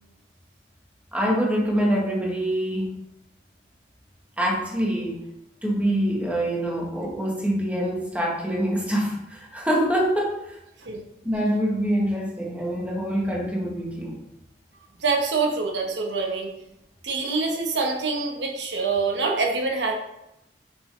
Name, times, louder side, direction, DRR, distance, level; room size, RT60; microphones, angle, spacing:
voice 1, 1.1-2.9 4.4-5.2 5.6-10.6 11.2-14.2, equal, 10° right, -2 dB, 1.4 m, -25 dB
voice 2, 15.0-16.5 17.0-19.9, right 4 dB, 85° right, 1 dB, 1.2 m, -25 dB
6.7 x 6.2 x 3.4 m, 0.87 s
head